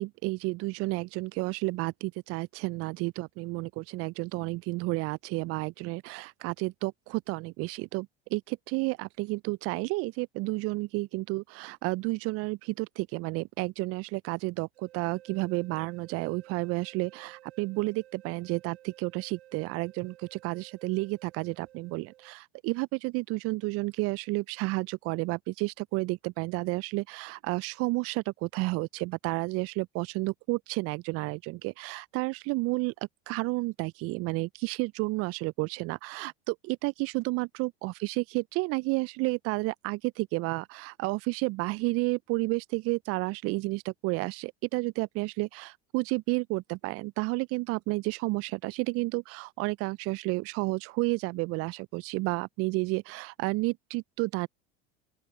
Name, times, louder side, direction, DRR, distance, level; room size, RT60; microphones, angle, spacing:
voice 1, 0.0-32.9 33.3-54.5, right 23 dB, 50° right, 0.4 m, -31 dB
sound 1, 14.7-22.4, right 13 dB, 90° right, 0.8 m, -55 dB
open air
hypercardioid pair, 80°, 31 cm